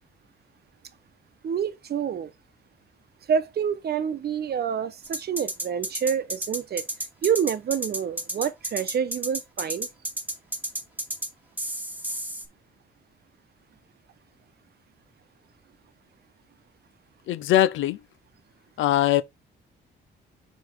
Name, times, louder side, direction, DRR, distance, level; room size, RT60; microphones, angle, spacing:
voice 1, 1.4-2.3 3.3-6.8 7.2-9.9, right 8 dB, 55° right, 0.9 m, -27 dB
sound 1, 5.0-11.3 11.6-12.5, right 1 dB, 10° right, 1.9 m, -31 dB
voice 2, 17.3-18.0 18.8-19.2, left 13 dB, 80° left, 0.6 m, -21 dB
5.0 x 4.3 x 4.5 m
cardioid pair, 90°, 20 cm